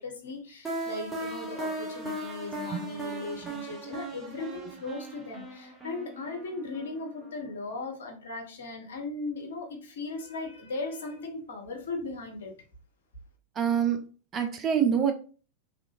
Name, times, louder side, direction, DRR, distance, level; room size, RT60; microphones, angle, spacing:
voice 1, 0.0-12.5, left 3 dB, 65° left, 0.7 m, -37 dB
sound 1, 0.6-7.4, right 2 dB, 10° right, 0.8 m, -38 dB
voice 2, 13.6-14.0 14.3-15.1, right 8 dB, 25° right, 0.4 m, -25 dB
2.8 x 2.4 x 2.4 m
figure-of-eight pair, 90°, 0 cm